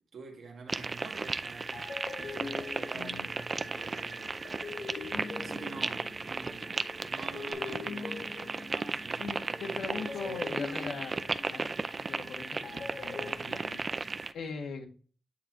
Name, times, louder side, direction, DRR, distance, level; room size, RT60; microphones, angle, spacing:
voice 1, 0.1-4.4 4.7-10.4, right 4 dB, 55° right, 1.9 m, -48 dB
sound 1, 0.7-14.3, right 3 dB, 25° right, 0.4 m, -36 dB
sound 2, 1.4-1.5 1.7-6.7 7.2-9.4 9.9-13.3, left 4 dB, 45° left, 1.3 m, -43 dB
Telephone, 2.5-7.5, equal, 5° left, 2.3 m, -54 dB
voice 2, 2.9-3.3 9.2-11.1 11.5-11.7 12.0-14.8, left 4 dB, 80° left, 2.0 m, -41 dB
9.6 x 4.2 x 3.1 m
wide cardioid pair, 165°, 0 cm